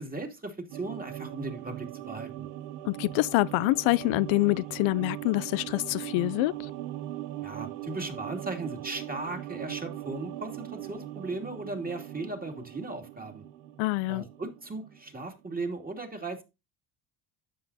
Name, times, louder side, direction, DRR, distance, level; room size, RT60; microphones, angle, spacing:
voice 1, 0.0-2.5 7.4-13.4 14.1-16.4, right 2 dB, 20° right, 2.7 m, -37 dB
sound 1, 0.7-15.3 15.5-15.6, right 14 dB, 90° right, 0.8 m, -40 dB
voice 2, 2.9-6.7 13.8-14.2, left 20 dB, 75° left, 0.5 m, -26 dB
11.5 x 7.6 x 2.8 m
supercardioid pair, 80°, 47 cm